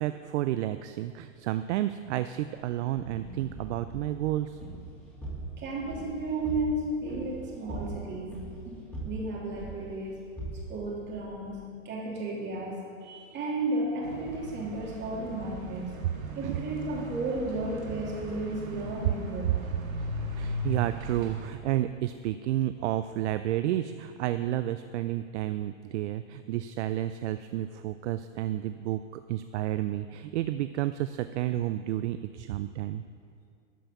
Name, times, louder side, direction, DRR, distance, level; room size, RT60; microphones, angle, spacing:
voice 1, 0.0-4.6 16.4-16.6 20.3-33.0, right 13 dB, 60° right, 11 dB, 0.5 m, -31 dB
sound 1, 2.9-11.6, right 2 dB, 5° left, 3.0 m, -42 dB
voice 2, 5.6-8.4 8.6-8.8 9.0-10.2 10.7-11.6 11.8-16.0 16.3-19.6, right 2 dB, 25° right, -3 dB, 2.9 m, -33 dB
sound 2, 14.0-21.5, right 1 dB, 90° right, 2.1 m, -38 dB
12.5 x 5.7 x 6.9 m, 2.3 s
hypercardioid pair, 130°, 40 cm